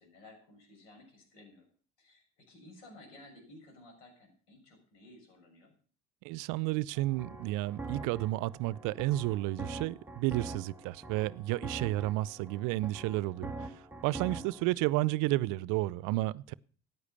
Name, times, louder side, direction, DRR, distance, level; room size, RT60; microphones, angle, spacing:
voice 1, 0.0-1.7 2.0-5.7 14.5-14.9, left 1 dB, 80° left, 6.9 m, -56 dB
voice 2, 6.2-13.7 14.0-16.5, right 17 dB, 60° right, 0.6 m, -31 dB
sound 1, 6.9-14.6, right 3 dB, 5° right, 2.0 m, -44 dB
14.5 x 9.7 x 6.8 m
hypercardioid pair, 60°, 35 cm